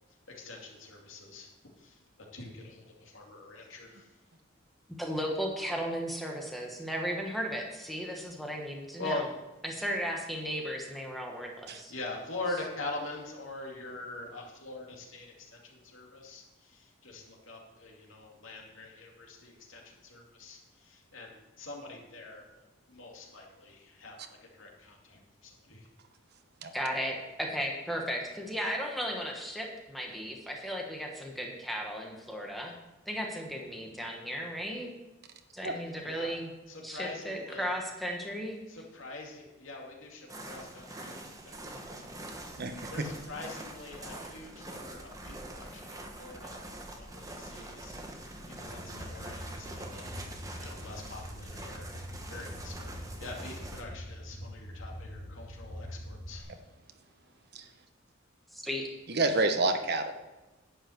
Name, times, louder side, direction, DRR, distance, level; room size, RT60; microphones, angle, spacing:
voice 1, 0.3-1.5 1.8-2.0 2.3-4.1 9.0-9.2 11.9-22.5 22.9-25.9 36.0-36.3 36.7-37.7 38.7-42.2 42.5-52.0 52.3-52.9 53.2-56.5, left 2 dB, 85° left, 0 dB, 2.5 m, -44 dB
voice 2, 5.0-9.3 9.6-11.9 26.7-32.7 33.1-34.9 35.5-36.5 36.8-38.6 58.5-58.9, equal, ahead, 0 dB, 1.4 m, -35 dB
sound 1, 40.3-53.8, right 1 dB, 15° right, 1.2 m, -44 dB
sound 2, 48.6-56.4, equal, 55° left, 2.1 m, -44 dB
voice 3, 59.1-60.1, right 2 dB, 55° right, 7 dB, 1.1 m, -27 dB
11.0 x 5.7 x 8.0 m, 1.1 s
head